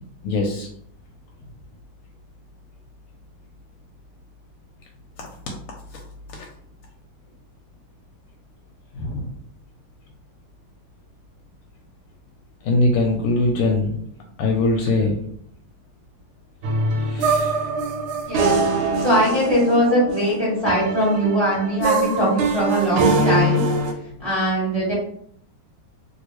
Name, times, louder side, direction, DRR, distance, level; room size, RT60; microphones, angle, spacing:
voice 1, 0.2-0.7 5.5-5.6 6.3-6.4 9.0-9.3 12.6-14.0 14.4-15.2 17.0-17.6, left 2 dB, 85° left, 0 dB, 1.4 m, -22 dB
sound 1, 16.6-23.9, right 2 dB, 90° right, 1.5 m, -23 dB
voice 2, 19.0-23.6 24.2-24.9, equal, 20° right, -7 dB, 1.2 m, -21 dB
3.2 x 2.7 x 2.9 m, 0.65 s
omnidirectional pair, 2.3 m